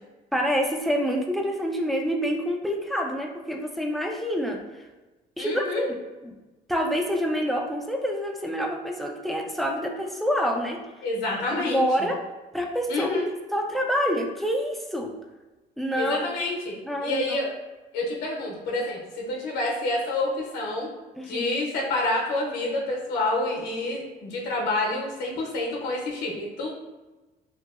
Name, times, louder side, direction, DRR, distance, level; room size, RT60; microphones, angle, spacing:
voice 1, 0.3-4.6 5.4-6.0 6.2-6.3 6.7-10.8 11.6-12.2 12.5-13.2 13.5-15.1 15.8-16.3 16.9-17.2 21.2-21.5, equal, ahead, 1 dB, 0.3 m, -27 dB
voice 2, 5.4-5.8 11.0-12.1 12.9-13.3 15.9-17.5 17.9-20.9 21.2-26.7, left 2 dB, 80° left, -2 dB, 0.8 m, -28 dB
2.9 x 2.7 x 2.4 m, 1.1 s
cardioid pair, 110°, 17 cm